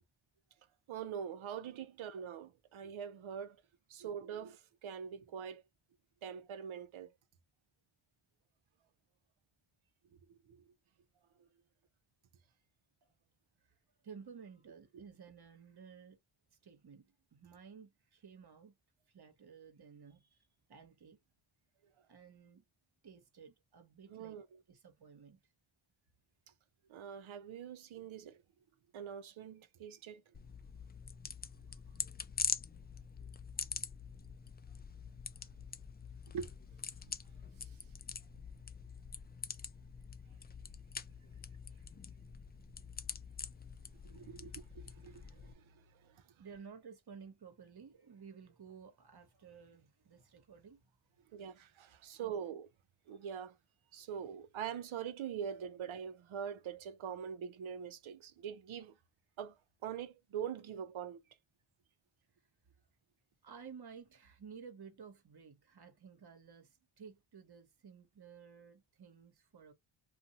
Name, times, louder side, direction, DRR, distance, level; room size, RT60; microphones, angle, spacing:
voice 1, 0.9-3.6 3.9-5.6 6.2-7.1 10.3-10.6 11.4-11.5 24.1-24.5 26.9-28.4 28.9-30.2 36.3-36.5 44.0-46.2 51.3-52.7 53.1-53.6 53.9-59.0 59.4-61.2, right 8 dB, 70° right, 0.7 m, -44 dB
voice 2, 14.0-16.2 16.5-18.7 19.1-21.2 22.1-22.6 23.0-24.4 24.7-25.4 46.4-50.8 52.2-52.4 63.4-69.7, right 6 dB, 50° right, 1.1 m, -54 dB
sound 1, 30.3-45.5, left 6 dB, 20° left, 0.3 m, -44 dB
2.6 x 2.3 x 2.7 m
cardioid pair, 45°, 49 cm